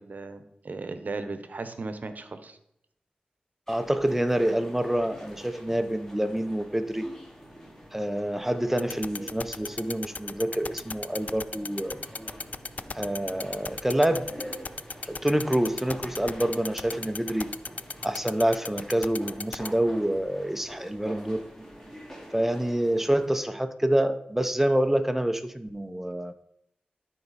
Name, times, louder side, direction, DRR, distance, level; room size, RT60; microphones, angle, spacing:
voice 1, 0.0-2.6, right 3 dB, 60° right, 9 dB, 0.9 m, -36 dB
sound 1, 3.7-23.3, equal, 15° left, 2.7 m, -46 dB
voice 2, 3.7-7.0 7.9-12.0 12.9-14.3 15.0-17.5 18.0-21.4 22.3-26.3, right 1 dB, 10° right, 9 dB, 0.7 m, -27 dB
sound 2, 8.8-19.7, left 4 dB, 55° left, 0.4 m, -34 dB
13.0 x 4.5 x 4.2 m, 0.77 s
cardioid pair, 55°, 3 cm